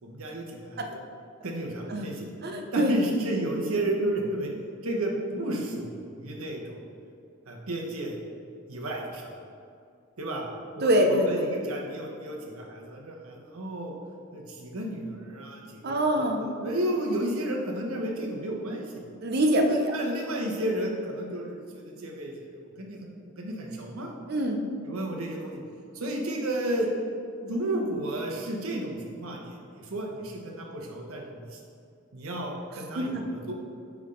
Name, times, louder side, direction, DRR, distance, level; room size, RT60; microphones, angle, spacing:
voice 1, 0.0-1.0 1.4-2.3 2.7-4.5 4.8-5.9 6.2-6.8 7.5-8.2 8.7-9.3 10.2-10.5 10.8-13.9 14.3-19.0 19.7-23.1 23.4-24.1 24.9-25.6 25.9-26.9 27.4-31.6 32.1-33.5, right 1 dB, 90° right, 0 dB, 1.0 m, -32 dB
voice 2, 2.4-3.0 10.8-11.5 15.8-16.4 19.2-19.9 24.3-24.6 32.9-33.3, right 1 dB, 50° right, 3 dB, 0.6 m, -24 dB
9.5 x 3.6 x 3.8 m, 2.4 s
head